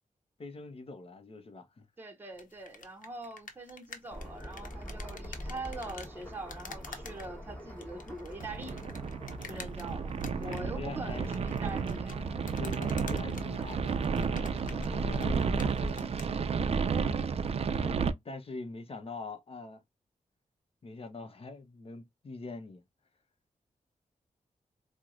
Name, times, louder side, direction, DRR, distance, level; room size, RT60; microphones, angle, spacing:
voice 1, 0.4-1.9 10.1-11.3 12.6-13.9 14.3-17.0 17.7-19.8 20.8-22.8, left 3 dB, 45° left, 0.7 m, -44 dB
voice 2, 2.0-8.8 9.4-12.1, right 2 dB, 15° right, 0.7 m, -43 dB
sound 1, 2.3-16.3, left 5 dB, 85° left, 0.7 m, -49 dB
sound 2, 4.1-15.9, equal, 10° left, 1.1 m, -42 dB
sound 3, 8.4-18.1, right 6 dB, 50° right, 0.4 m, -32 dB
4.4 x 2.1 x 2.4 m
wide cardioid pair, 115°, 13 cm